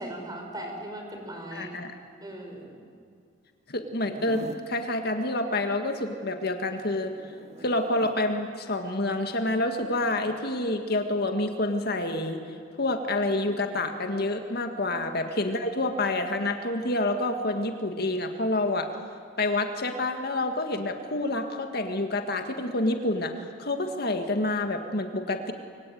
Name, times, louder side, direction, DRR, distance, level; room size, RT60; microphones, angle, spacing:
voice 1, 0.0-1.7 2.2-2.8 14.9-15.0, right 1 dB, 20° right, 2 dB, 5.9 m, -38 dB
voice 2, 1.5-1.9 3.7-7.2 7.6-12.4 12.8-18.9 19.4-25.5, left 2 dB, 60° left, 5 dB, 1.9 m, -28 dB
Zipper (clothing), 4.0-4.7 6.9-8.2 10.1-10.4, right 1 dB, 35° right, 1.4 m, -44 dB
25.5 x 23.5 x 9.4 m, 2.2 s
head